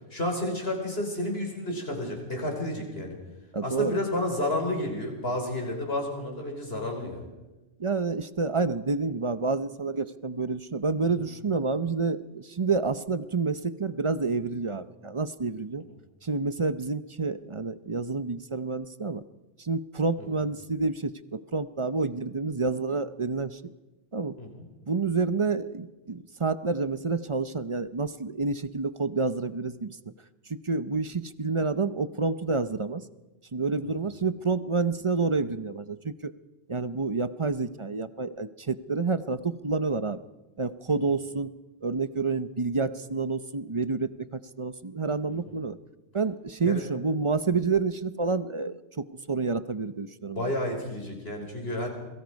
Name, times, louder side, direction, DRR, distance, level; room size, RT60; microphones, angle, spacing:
voice 1, 0.1-3.2 3.6-7.3 11.2-11.3 20.2-20.3 24.4-24.6 45.3-45.4 46.6-46.8 50.3-51.9, left 1 dB, 60° left, 2 dB, 5.5 m, -31 dB
voice 2, 3.5-4.0 7.8-15.8 16.2-19.2 19.6-23.6 24.1-24.4 24.9-30.0 30.5-33.0 33.5-36.3 36.7-40.2 40.6-41.5 41.8-45.8 46.1-50.5, right 4 dB, 30° right, 13 dB, 0.7 m, -29 dB
28.0 x 22.0 x 5.3 m, 1.1 s
omnidirectional pair, 1.2 m